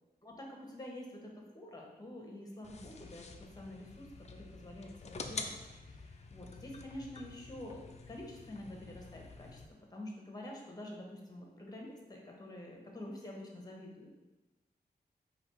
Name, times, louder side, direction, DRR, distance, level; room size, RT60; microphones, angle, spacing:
voice 1, 0.2-9.6 9.9-14.2, left 1 dB, 20° left, 0 dB, 1.0 m, -48 dB
sound 1, 2.6-9.7, left 4 dB, 40° left, 0.4 m, -48 dB
4.2 x 2.8 x 4.5 m, 1.1 s
wide cardioid pair, 90°, 17 cm